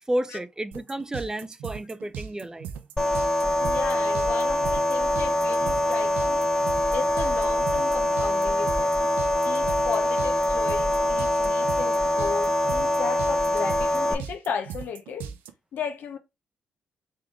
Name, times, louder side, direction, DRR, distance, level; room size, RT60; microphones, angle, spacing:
voice 1, 0.1-2.7, right 1 dB, 20° right, 0.4 m, -31 dB
sound 1, 0.7-15.5, right 8 dB, 75° right, 0.5 m, -38 dB
sound 2, 3.0-14.1, left 1 dB, 20° left, 0.9 m, -24 dB
voice 2, 3.6-6.5 6.9-8.9 9.4-15.3 15.7-16.2, left 7 dB, 65° left, 0.7 m, -35 dB
3.9 x 3.1 x 3.2 m
hypercardioid pair, 45°, 3 cm